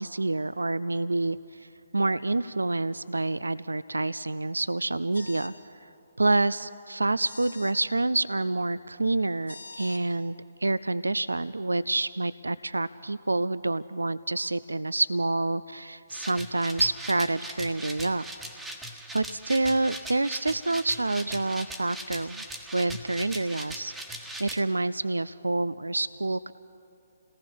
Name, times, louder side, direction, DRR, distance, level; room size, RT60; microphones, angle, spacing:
voice 1, 0.0-5.5 6.2-18.3 19.1-22.4 22.7-26.5, right 2 dB, 80° right, 16 dB, 0.4 m, -28 dB
sound 1, 5.1-5.6 7.2-7.8 9.5-10.0, left 3 dB, 80° left, 2.6 m, -44 dB
sound 2, 16.1-24.6, right 1 dB, 5° right, 1.5 m, -40 dB
29.0 x 18.5 x 5.2 m, 2.7 s
figure-of-eight pair, 135°, 0 cm